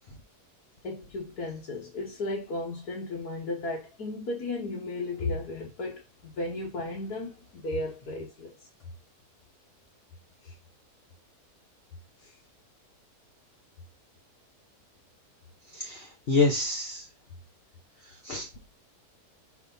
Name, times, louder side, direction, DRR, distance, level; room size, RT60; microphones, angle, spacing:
voice 1, 0.8-8.6 10.4-10.6 12.2-12.3, left 2 dB, 75° left, 1.8 m, -35 dB
voice 2, 15.7-17.0 18.2-18.5, left 3 dB, 45° left, 1.0 m, -27 dB
5.0 x 3.5 x 5.4 m
omnidirectional pair, 1.6 m